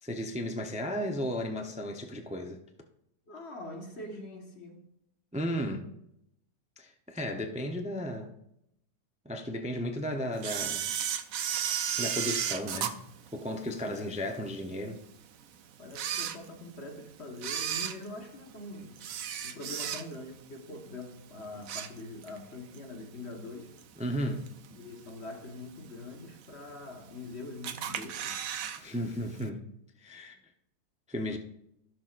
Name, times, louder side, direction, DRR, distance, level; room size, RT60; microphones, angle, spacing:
voice 1, 0.0-2.6 5.3-5.9 6.8-8.3 9.2-10.8 12.0-13.0 13.3-15.0 24.0-24.5 28.8-29.6 30.0-30.4 31.1-31.4, equal, 10° right, 0.4 m, -34 dB
voice 2, 3.3-4.8 13.8-14.1 15.8-19.1 19.4-23.7 24.7-28.4, left 2 dB, 45° left, 1.6 m, -43 dB
Camera, 10.4-14.0 14.5-14.6 15.3-15.4 15.8-16.9 17.3-20.4 20.7-21.0 21.4-22.4 22.7-22.8 23.8-23.9 24.5-24.9 25.3-25.4 25.6-25.7 25.8-25.9 26.7-27.2 27.6-28.8 29.1-29.2 29.4-29.5, right 9 dB, 65° right, 1.0 m, -34 dB
16.5 x 6.3 x 2.5 m
omnidirectional pair, 1.7 m